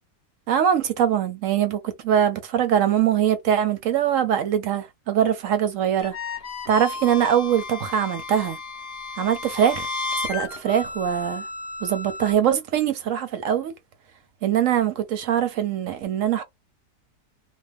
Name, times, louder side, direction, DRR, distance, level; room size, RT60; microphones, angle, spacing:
voice 1, 0.5-6.1 6.7-8.6 9.2-9.9 10.3-11.4 11.8-13.7 14.4-16.4, right 9 dB, 70° right, 0.9 m, -22 dB
sound 1, 6.0-12.3, left 3 dB, 50° left, 0.8 m, -33 dB
2.5 x 2.2 x 3.3 m
omnidirectional pair, 1.6 m